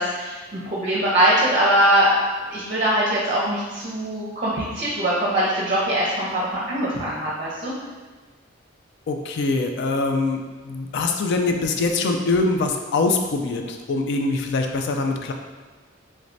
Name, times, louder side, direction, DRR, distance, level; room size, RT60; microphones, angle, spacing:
voice 1, 0.0-2.1 2.5-7.7, right 1 dB, 40° right, -5 dB, 0.6 m, -22 dB
voice 2, 9.1-15.3, left 3 dB, 60° left, 4 dB, 0.4 m, -23 dB
3.2 x 3.2 x 2.6 m, 1.4 s
head